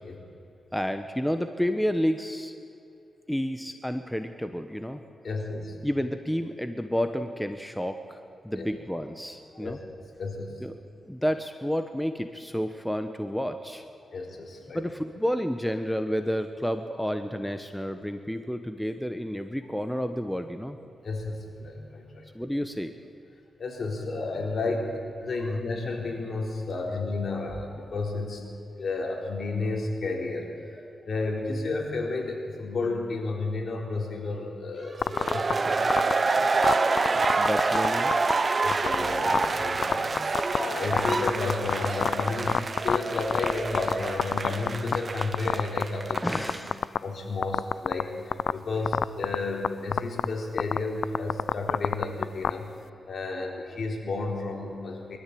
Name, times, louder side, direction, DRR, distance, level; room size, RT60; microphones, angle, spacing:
voice 1, 0.7-2.5 3.3-5.0 5.8-8.2 8.4-9.8 10.6-10.7 11.1-13.8 14.7-20.8 22.3-22.9 30.8-30.9 37.4-38.1 46.2-46.8, equal, 5° left, 8 dB, 1.1 m, -30 dB
voice 2, 5.2-5.8 8.6-8.7 9.5-10.6 14.1-14.8 21.0-22.3 23.6-28.4 28.8-30.5 31.1-35.5 38.6-46.7 47.0-52.7 53.1-55.2, left 3 dB, 60° left, 0 dB, 4.1 m, -32 dB
sound 1, 35.0-35.5 35.9-36.1 36.6-37.9 38.1-38.3 38.7-38.9 39.3-39.4 39.8-40.6 40.9-43.9 44.2-45.0 45.2-45.8 46.1-47.0 47.4-48.0 48.3-48.5 48.9-49.3 49.6-49.7 49.9-50.2 50.6-50.8 51.0-52.5, left 7 dB, 75° left, 0.4 m, -23 dB
sound 2, 35.0-46.7, right 3 dB, 40° right, 1.1 m, -27 dB
22.5 x 13.5 x 8.6 m, 2.6 s
cardioid pair, 70°, 0 cm